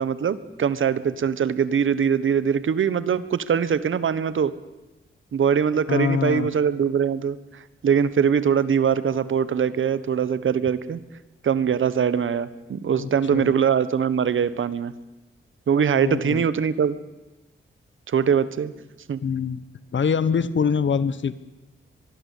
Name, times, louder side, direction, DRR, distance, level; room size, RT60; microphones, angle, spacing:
voice 1, 0.0-4.5 5.3-11.0 11.4-14.9 15.7-17.0 18.1-18.7 19.1-19.2, right 7 dB, 70° right, 15 dB, 1.4 m, -22 dB
voice 2, 5.9-6.5 13.0-13.5 15.9-16.5 19.2-19.6 19.9-21.3, left 6 dB, 65° left, 15 dB, 1.4 m, -24 dB
23.5 x 21.5 x 8.5 m, 1.0 s
wide cardioid pair, 115°, 21 cm